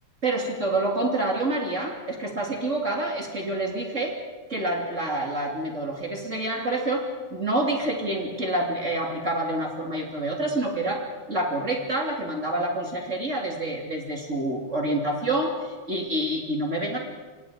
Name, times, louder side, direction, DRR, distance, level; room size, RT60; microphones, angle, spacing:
voice 1, 0.2-4.1 4.5-7.0 7.3-11.0 11.3-17.0, right 1 dB, 25° right, 0 dB, 3.1 m, -27 dB
27.5 x 24.0 x 5.2 m, 1.4 s
omnidirectional pair, 3.3 m